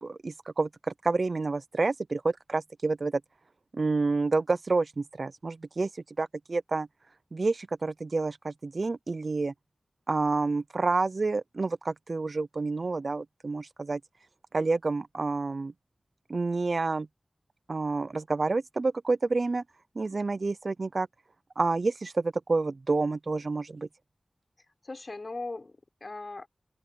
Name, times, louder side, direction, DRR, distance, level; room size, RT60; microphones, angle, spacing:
voice 1, 0.0-3.2 3.7-5.9 6.2-6.9 7.3-9.5 10.1-14.0 14.5-15.7 16.3-17.1 17.7-19.6 20.0-21.1 21.6-23.9, right 3 dB, 60° right, 0.4 m, -29 dB
voice 2, 24.8-26.5, left 3 dB, 50° left, 4.0 m, -39 dB
open air
wide cardioid pair, 80°, 0 cm